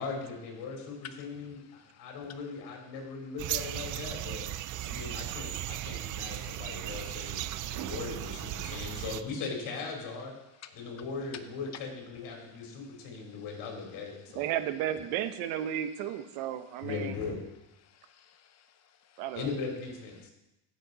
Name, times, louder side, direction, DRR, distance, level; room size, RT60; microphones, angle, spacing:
voice 1, 0.0-4.5 4.8-7.4 7.7-10.3 10.7-14.4 16.8-17.4 19.3-20.3, left 4 dB, 60° left, 0 dB, 3.7 m, -39 dB
voice 2, 1.0-2.4 7.6-7.9 10.6-11.0 12.7-13.4 17.8-19.3, left 9 dB, 35° left, 9 dB, 0.9 m, -54 dB
sound 1, 3.4-9.2, right 14 dB, 45° right, 0.5 m, -36 dB
voice 3, 14.3-17.1 19.2-19.5, right 11 dB, 80° right, 10 dB, 1.0 m, -33 dB
15.5 x 6.7 x 4.0 m, 0.95 s
cardioid pair, 125°, 44 cm